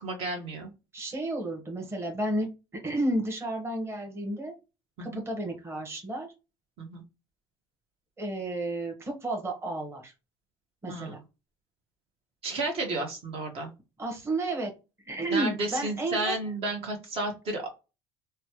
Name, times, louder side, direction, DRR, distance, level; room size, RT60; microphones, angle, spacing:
voice 1, 0.0-0.7 5.0-5.2 6.8-7.0 10.9-11.2 12.4-13.7 15.3-17.7, right 2 dB, 55° right, 1 dB, 1.1 m, -32 dB
voice 2, 0.9-4.5 5.0-6.3 8.2-10.1 10.8-11.2 14.0-14.7 15.0-16.3, right 1 dB, 20° right, 1 dB, 1.1 m, -32 dB
3.1 x 2.2 x 2.9 m, 0.28 s
supercardioid pair, 90°, 12 cm